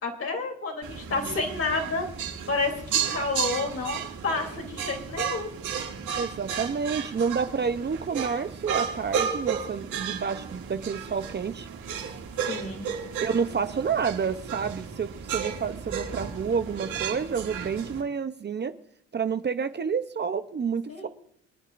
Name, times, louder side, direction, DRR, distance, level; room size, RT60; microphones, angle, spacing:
voice 1, 0.0-2.1 2.5-5.5 12.4-12.9 20.9-21.1, left 3 dB, 50° left, 2 dB, 3.2 m, -30 dB
sound 1, 0.8-18.0, right 7 dB, 85° right, 4.5 m, -33 dB
voice 2, 6.2-11.7 13.2-18.7 19.1-21.1, right 6 dB, 35° right, 10 dB, 0.8 m, -29 dB
27.5 x 9.8 x 2.6 m, 0.67 s
cardioid pair, 90°, 30 cm